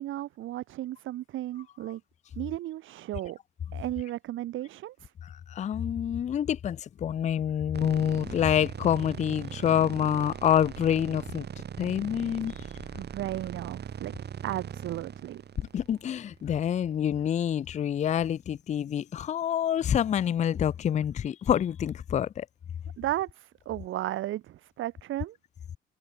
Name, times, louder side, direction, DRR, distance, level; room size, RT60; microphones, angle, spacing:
voice 1, 0.0-2.0 2.4-3.4 3.7-5.1 13.0-14.1 14.4-15.4 23.0-25.4, right 14 dB, 80° right, 1.7 m, -34 dB
voice 2, 5.2-11.5 11.8-12.5 15.7-22.5, left 9 dB, 35° left, 0.4 m, -27 dB
sound 1, 7.7-16.9, right 8 dB, 55° right, 5.2 m, -40 dB
cardioid pair, 90°, 20 cm